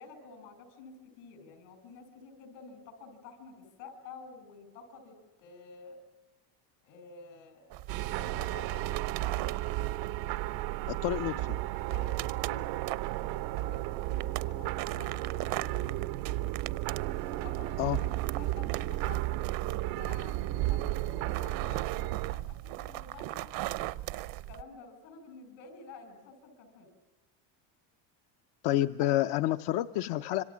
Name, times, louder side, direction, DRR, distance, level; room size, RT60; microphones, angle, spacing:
voice 1, 0.0-6.0 6.8-9.6 11.3-11.5 11.8-12.6 13.5-15.9 17.2-18.1 18.4-23.5 24.3-26.9, left 4 dB, 80° left, 10 dB, 6.4 m, -50 dB
sound 1, 7.7-24.6, right 16 dB, 65° right, 0.9 m, -39 dB
sound 2, 7.9-22.3, right 16 dB, 90° right, 1.1 m, -34 dB
voice 2, 10.9-11.3 17.8-18.0 28.6-30.4, left 14 dB, 60° left, 9 dB, 0.8 m, -28 dB
27.0 x 25.5 x 7.3 m, 1.2 s
cardioid pair, 130°, 49 cm